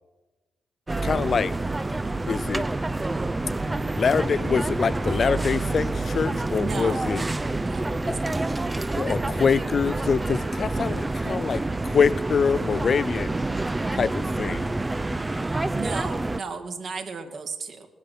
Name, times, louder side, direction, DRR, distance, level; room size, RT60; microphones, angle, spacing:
sound 1, 0.9-16.4, right 2 dB, 25° right, 0.6 m, -27 dB
voice 1, 1.0-1.6 2.3-2.7 3.9-7.2 9.0-13.3 13.9-14.8, left 6 dB, 55° left, 0.4 m, -25 dB
voice 2, 6.6-7.0 7.6-8.4 15.7-17.9, right 5 dB, 60° right, 2.3 m, -34 dB
19.5 x 9.3 x 6.8 m
supercardioid pair, 50°, 0 cm